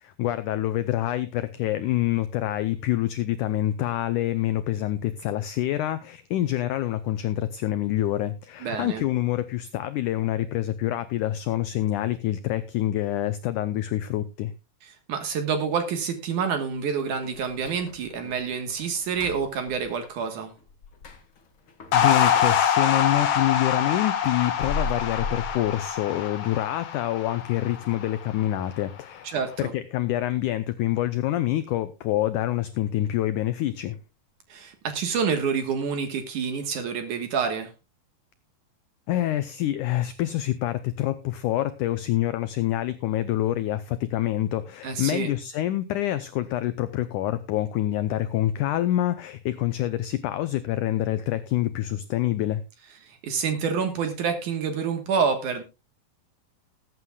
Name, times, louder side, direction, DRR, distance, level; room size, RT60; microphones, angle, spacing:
voice 1, 0.0-14.5 21.9-29.3 29.6-34.0 39.1-52.6, left 14 dB, 85° left, 12 dB, 1.7 m, -26 dB
voice 2, 8.6-9.0 14.8-20.5 29.2-29.7 34.5-37.7 44.8-45.3 53.0-55.6, right 6 dB, 65° right, 7 dB, 2.5 m, -28 dB
sound 1, 17.2-23.2 23.5-26.4 26.7-26.8 27.3-27.4 28.0-28.3 28.6-28.7 29.2-29.3, left 3 dB, 45° left, 1.9 m, -39 dB
sound 2, 21.9-28.4, left 8 dB, 65° left, 1.6 m, -25 dB
20.5 x 9.5 x 2.3 m, 0.27 s
omnidirectional pair, 4.5 m